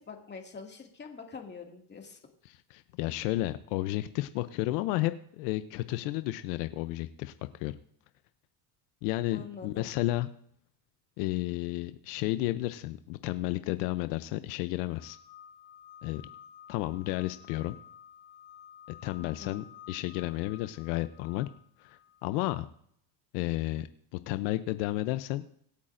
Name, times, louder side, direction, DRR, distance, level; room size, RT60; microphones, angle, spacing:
voice 1, 0.1-2.2 9.3-9.9 19.2-19.6, left 5 dB, 20° left, 1 dB, 2.2 m, -45 dB
voice 2, 2.5-7.7 9.0-10.3 11.2-15.2 16.0-16.2 16.7-17.7 19.0-21.5 21.8-22.7 23.3-25.4, left 17 dB, 80° left, 12 dB, 0.7 m, -32 dB
sound 1, 14.9-22.7, left 9 dB, 40° left, 1.2 m, -53 dB
25.0 x 8.4 x 2.6 m, 0.67 s
supercardioid pair, 125°, 48 cm